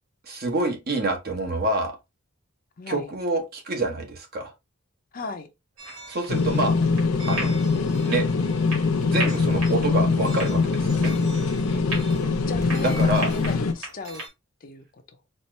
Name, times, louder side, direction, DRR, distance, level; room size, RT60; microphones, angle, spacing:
voice 1, 0.2-1.9 2.9-4.5 6.1-6.8 7.3-7.6 8.0-8.2 9.1-11.1 12.8-13.3, right 2 dB, 50° right, 1.1 m, -27 dB
voice 2, 2.8-3.1 5.1-5.5 12.5-14.2 14.6-15.2, left 3 dB, 45° left, 0.6 m, -36 dB
sound 1, 5.8-14.3, right 2 dB, 85° right, 2.0 m, -38 dB
sound 2, 6.3-13.7, left 4 dB, 85° left, 0.6 m, -23 dB
4.3 x 2.5 x 3.2 m
head